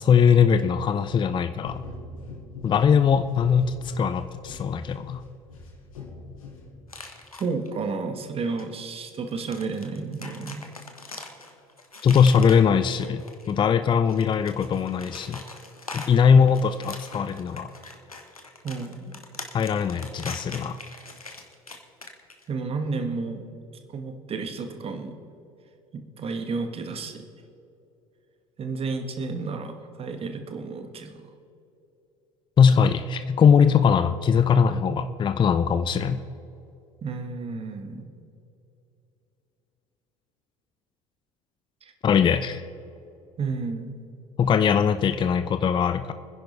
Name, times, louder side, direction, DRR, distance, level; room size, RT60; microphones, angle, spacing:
voice 1, 0.0-1.8 2.6-5.2 12.0-13.2 13.5-15.4 15.9-17.7 19.5-20.8 32.6-36.2 42.0-42.6 44.4-46.1, left 7 dB, 25° left, 11 dB, 0.6 m, -20 dB
sound 1, 1.6-7.1, left 2 dB, 70° left, 2.2 m, -42 dB
sound 2, 6.9-7.7 8.6-8.7 9.1-13.6 14.0-22.5, left 3 dB, 90° left, 1.2 m, -42 dB
voice 2, 7.4-10.6 16.4-16.5 18.6-19.2 22.5-23.4 23.9-25.2 25.9-27.3 28.6-31.2 37.0-38.0 41.8-41.9 43.4-43.9, right 4 dB, 35° right, 7 dB, 1.5 m, -32 dB
24.5 x 10.5 x 3.3 m, 2.8 s
figure-of-eight pair, 65°, 18 cm